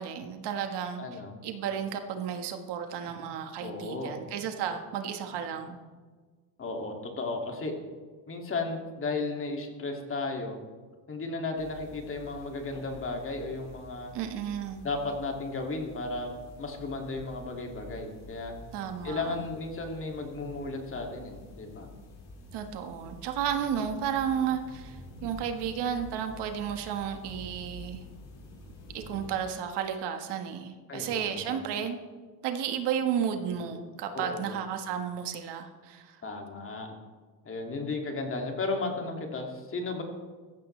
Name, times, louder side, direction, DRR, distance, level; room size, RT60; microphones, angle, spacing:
voice 1, 0.0-5.8 14.1-14.8 18.7-19.3 22.5-28.0 28.9-32.0 32.4-36.2, right 8 dB, 65° right, 6 dB, 1.6 m, -33 dB
voice 2, 1.0-1.3 3.6-4.2 6.6-7.7 8.3-10.6 11.1-14.1 14.8-18.5 19.0-21.9 30.9-31.6 34.1-34.6 36.2-36.9 37.4-40.0, left 3 dB, 30° left, 2 dB, 2.4 m, -34 dB
sound 1, 11.6-29.3, left 1 dB, 55° left, 5.0 m, -49 dB
16.0 x 14.5 x 3.3 m, 1.4 s
cardioid pair, 130°, 45 cm